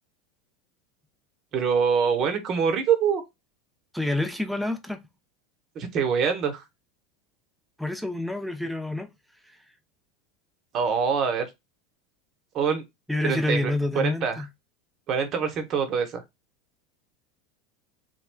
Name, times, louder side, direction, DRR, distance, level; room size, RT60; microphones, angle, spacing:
voice 1, 1.5-3.2 5.7-6.6 10.7-11.5 12.5-12.8 13.2-14.5 15.1-16.2, right 6 dB, 45° right, 0.9 m, -25 dB
voice 2, 3.9-5.0 7.8-9.1 13.1-14.5, left 2 dB, ahead, 0.6 m, -28 dB
3.2 x 2.2 x 2.2 m
hypercardioid pair, 85°, 0 cm